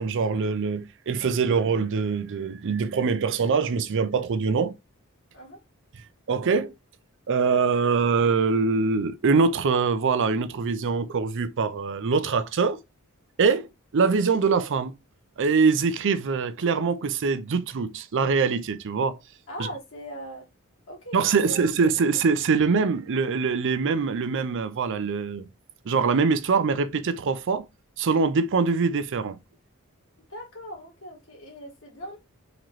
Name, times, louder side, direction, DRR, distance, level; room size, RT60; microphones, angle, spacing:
voice 1, 0.0-4.7 6.3-6.7 7.3-12.8 13.4-13.7 13.9-14.9 15.4-19.2 21.1-25.5 25.8-27.6 28.0-29.4, right 5 dB, 55° right, 0.5 m, -23 dB
voice 2, 19.5-20.4 20.9-21.6 30.3-32.2, equal, 60° left, 2.0 m, -40 dB
3.9 x 3.0 x 3.0 m
head